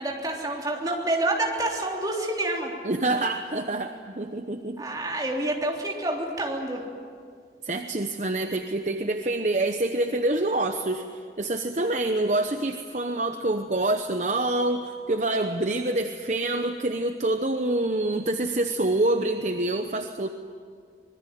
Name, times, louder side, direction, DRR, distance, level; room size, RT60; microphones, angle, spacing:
voice 1, 0.0-2.7 4.8-6.8, right 1 dB, 20° right, -1 dB, 3.6 m, -28 dB
voice 2, 2.8-4.8 7.6-11.0 11.4-20.3, right 2 dB, 40° right, 6 dB, 0.9 m, -26 dB
25.5 x 21.0 x 9.4 m, 2.2 s
head